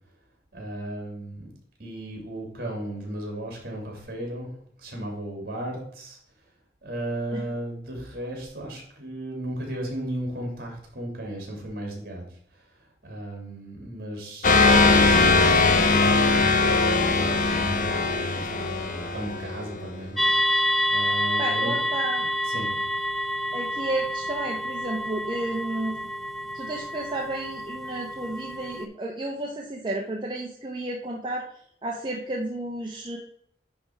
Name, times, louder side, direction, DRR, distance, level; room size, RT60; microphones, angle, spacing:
voice 1, 0.5-1.5 1.8-4.5 4.8-6.2 6.8-12.2 13.0-20.2 20.9-21.9 22.2-22.7, right 1 dB, 55° right, 0 dB, 2.7 m, -35 dB
sound 1, 14.4-19.8, left 3 dB, 45° left, 0.8 m, -20 dB
sound 2, 20.2-28.9, equal, ahead, 0.5 m, -28 dB
voice 2, 21.4-22.3 23.5-25.9 26.5-31.5 31.8-33.2, right 2 dB, 25° right, -1 dB, 0.8 m, -32 dB
10.0 x 3.5 x 4.5 m, 0.67 s
head